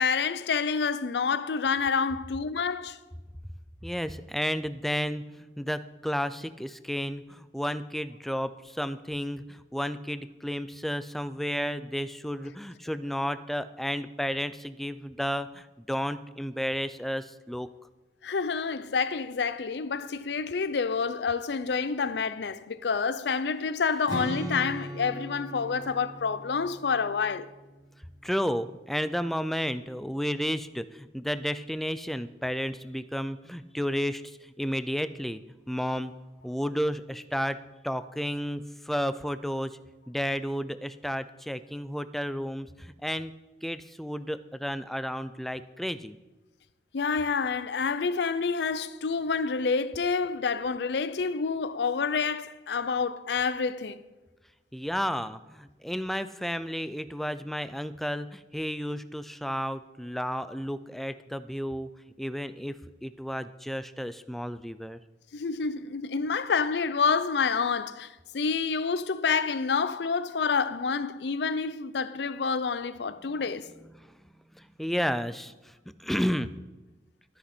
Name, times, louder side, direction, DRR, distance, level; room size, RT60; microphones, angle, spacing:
voice 1, 0.0-3.0 18.2-27.5 46.9-54.0 65.3-73.7, left 5 dB, 75° left, 0.5 m, -28 dB
voice 2, 3.8-17.7 28.2-34.2 34.6-35.4 35.7-36.1 36.4-37.6 37.8-39.7 40.1-43.3 43.6-46.1 54.7-61.9 62.2-65.0 74.6-75.5 76.0-76.5, equal, ahead, 0.3 m, -32 dB
Strum, 24.1-28.2, equal, 25° right, 2.7 m, -39 dB
13.0 x 9.6 x 4.3 m
head